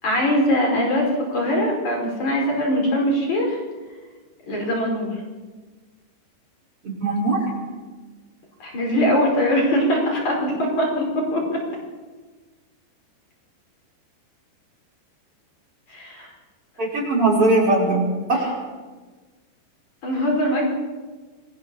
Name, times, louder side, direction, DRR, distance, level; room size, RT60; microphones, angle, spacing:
voice 1, 0.0-3.6 4.5-5.2 8.6-11.6 15.9-16.3 20.0-20.7, equal, 40° left, -1 dB, 6.4 m, -22 dB
voice 2, 6.8-7.5 16.8-18.6, right 2 dB, 30° right, -1 dB, 5.9 m, -20 dB
28.0 x 21.5 x 7.2 m, 1.3 s
omnidirectional pair, 5.0 m